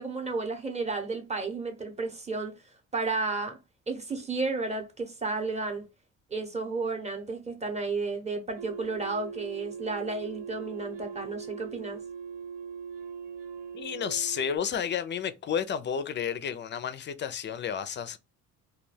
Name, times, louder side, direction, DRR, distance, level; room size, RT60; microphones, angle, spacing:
voice 1, 0.0-2.5 2.9-3.6 3.9-5.9 6.3-12.0, right 3 dB, 20° right, 0.8 m, -32 dB
sound 1, 8.6-14.6, right 6 dB, 85° right, 0.5 m, -41 dB
voice 2, 13.7-18.2, left 7 dB, 35° left, 0.4 m, -31 dB
2.3 x 2.2 x 3.2 m
supercardioid pair, 80°, 35 cm